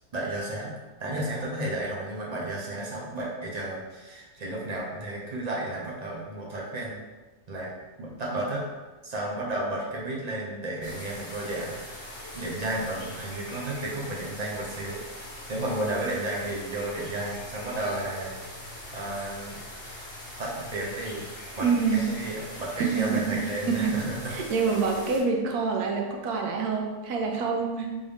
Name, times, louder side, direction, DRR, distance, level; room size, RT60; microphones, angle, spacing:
voice 1, 0.1-0.7 1.0-7.0 7.5-7.7 8.0-8.7 9.0-15.0 15.5-18.3 18.6-19.6 20.4-21.3 21.6-21.7 21.9-24.2, right 1 dB, 40° right, -4 dB, 0.6 m, -33 dB
sound 1, 10.8-25.2, left 1 dB, 40° left, 1.2 m, -42 dB
voice 2, 21.6-22.1 22.8-24.0 24.3-27.9, right 5 dB, 90° right, 1 dB, 1.1 m, -26 dB
3.7 x 2.6 x 3.4 m, 1.2 s
omnidirectional pair, 1.6 m